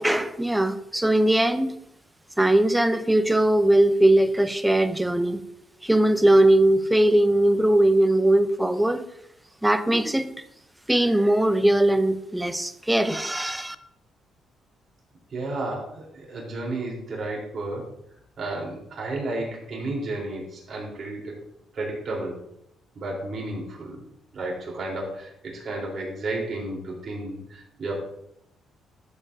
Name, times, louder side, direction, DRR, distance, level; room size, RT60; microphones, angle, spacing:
voice 1, 0.0-1.7 2.4-5.4 5.8-9.1 9.6-10.3 10.9-13.8, right 1 dB, 10° right, 0.7 m, -20 dB
voice 2, 15.3-17.9 18.4-21.4 21.7-22.4 23.0-24.0 24.3-28.0, right 2 dB, 50° right, 3.8 m, -32 dB
12.5 x 7.6 x 2.7 m
cardioid pair, 90°, 0 cm